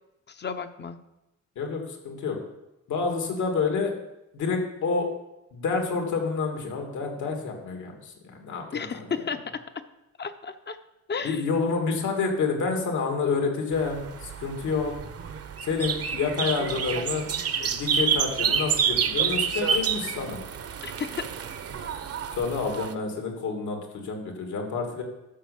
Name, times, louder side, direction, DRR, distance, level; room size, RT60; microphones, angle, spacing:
voice 1, 0.3-1.0 8.7-9.6 10.2-10.8 11.1-11.4 20.8-21.2, left 6 dB, 35° left, 9 dB, 1.0 m, -33 dB
voice 2, 1.6-2.4 2.9-3.9 4.3-5.1 5.5-9.1 11.2-14.9 15.6-17.3 17.6-20.4 22.3-25.0, left 4 dB, 75° left, 2 dB, 2.8 m, -28 dB
sound 1, 13.7-22.9, right 7 dB, 50° right, 1.1 m, -28 dB
12.5 x 5.7 x 7.2 m, 0.93 s
cardioid pair, 90°, 30 cm